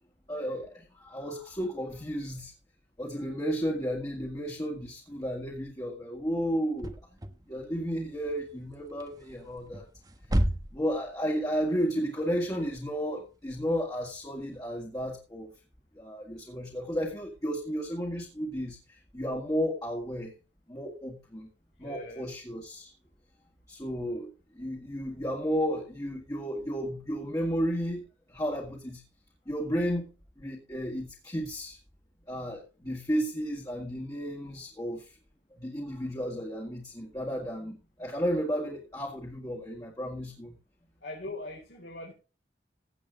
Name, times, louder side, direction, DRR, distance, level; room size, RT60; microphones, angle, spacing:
voice 1, 0.3-2.5 3.0-7.2 7.5-9.9 10.7-15.5 15.9-20.3 20.7-21.5 21.8-22.9 23.7-29.0 29.5-30.1 30.4-31.8 32.3-35.2 35.5-40.5, equal, 20° left, 1.9 m, -33 dB
sound 1, 6.5-14.6, equal, 20° right, 1.0 m, -35 dB
voice 2, 21.8-22.3 41.0-42.1, left 1 dB, 75° left, 4.3 m, -40 dB
16.0 x 7.8 x 3.7 m
head